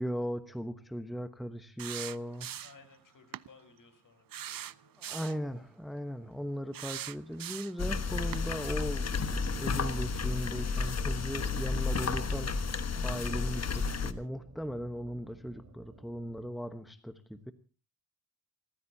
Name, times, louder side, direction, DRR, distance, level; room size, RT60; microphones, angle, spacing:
voice 1, 0.0-2.5 5.0-12.6 12.9-17.5, equal, ahead, 9 dB, 1.1 m, -38 dB
sound 1, 1.8-2.9 3.3-3.5 4.3-5.4 6.7-7.9 8.3-8.5, right 11 dB, 70° right, 0.7 m, -41 dB
voice 2, 2.6-5.2, left 4 dB, 60° left, 9 dB, 4.7 m, -59 dB
sound 2, 7.8-14.1, left 4 dB, 45° left, 1.3 m, -32 dB
sound 3, 7.9-16.4, right 3 dB, 45° right, 3.0 m, -56 dB
28.5 x 15.0 x 2.8 m, 0.33 s
wide cardioid pair, 150°, 36 cm